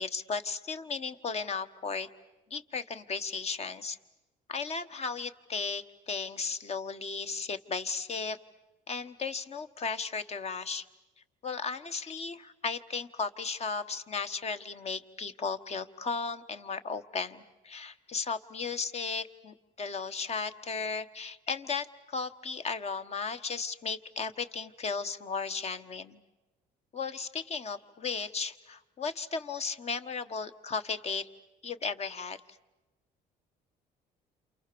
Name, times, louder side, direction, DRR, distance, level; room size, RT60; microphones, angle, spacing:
voice 1, 0.0-2.1 2.5-4.0 4.5-8.4 8.9-10.9 11.4-26.2 26.9-31.3 31.6-32.4, left 5 dB, 40° left, 10 dB, 1.4 m, -35 dB
29.0 x 28.0 x 7.0 m, 1.1 s
cardioid pair, 110°, 17 cm